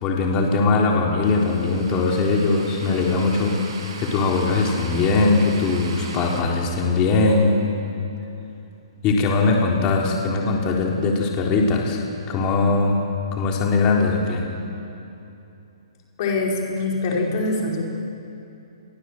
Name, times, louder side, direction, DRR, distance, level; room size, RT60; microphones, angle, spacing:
voice 1, 0.0-3.6 4.0-7.6 9.0-13.0 13.3-14.4, left 3 dB, 25° left, -1 dB, 3.8 m, -20 dB
sound 1, 1.2-6.4, right 4 dB, 65° right, 7.4 m, -39 dB
voice 2, 16.2-17.8, left 3 dB, 45° left, -1 dB, 5.2 m, -24 dB
28.5 x 23.0 x 7.8 m, 2.8 s
hypercardioid pair, 150°, 3 cm